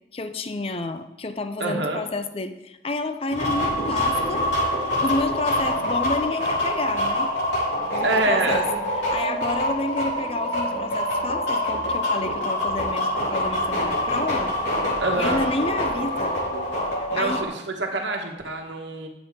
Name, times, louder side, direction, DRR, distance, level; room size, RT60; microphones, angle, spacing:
voice 1, 0.1-4.5 5.0-7.3 7.9-8.7 9.1-14.5 15.2-16.4 16.9-17.4, left 2 dB, 30° left, 10 dB, 0.5 m, -30 dB
voice 2, 1.6-2.1 8.0-8.6 15.0-15.5 17.1-19.1, right 2 dB, 85° right, 2 dB, 1.2 m, -26 dB
sound 1, 3.3-17.4, left 1 dB, 90° left, 3.3 m, -25 dB
10.0 x 7.0 x 3.6 m, 0.95 s
head